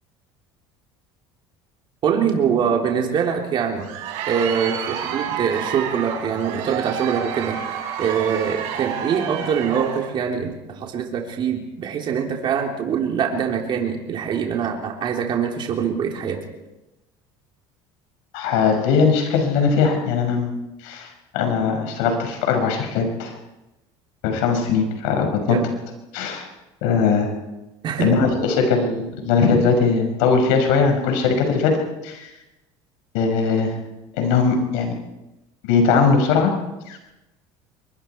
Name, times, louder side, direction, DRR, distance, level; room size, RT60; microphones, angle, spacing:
voice 1, 2.0-3.9 4.3-16.4 25.5-25.7 27.8-28.1, right 7 dB, 45° right, 1 dB, 3.7 m, -24 dB
Crowd, 3.6-10.2, right 9 dB, 70° right, 5.5 m, -29 dB
voice 2, 18.3-20.5 20.8-23.3 24.2-25.6 26.1-26.5 26.8-27.3 28.0-31.8 32.0-32.3 33.1-33.8 34.2-34.9 35.6-36.5 36.9-37.0, left 5 dB, 85° left, 4 dB, 5.9 m, -20 dB
24.0 x 22.5 x 4.7 m, 0.99 s
cardioid pair, 120°, 11 cm